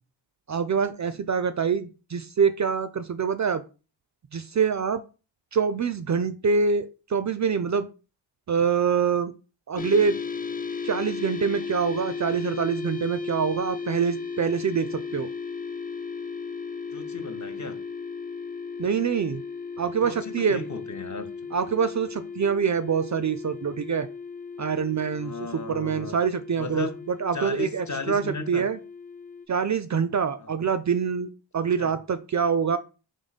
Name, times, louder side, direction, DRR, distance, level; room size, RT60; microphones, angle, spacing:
voice 1, 0.5-3.6 4.3-5.0 5.5-7.9 8.5-9.3 9.7-10.2 10.8-15.3 18.8-19.4 19.8-20.6 21.5-24.1 24.6-28.8 29.5-32.8, right 6 dB, 40° right, 0.4 m, -25 dB
sound 1, 9.8-29.5, left 5 dB, 20° left, 0.4 m, -36 dB
voice 2, 16.9-17.8 20.0-21.3 25.1-26.1 26.6-27.0 27.3-28.6 30.6-30.7 31.8-31.9, left 3 dB, 40° left, 0.8 m, -35 dB
3.7 x 3.1 x 4.0 m
cardioid pair, 45°, 46 cm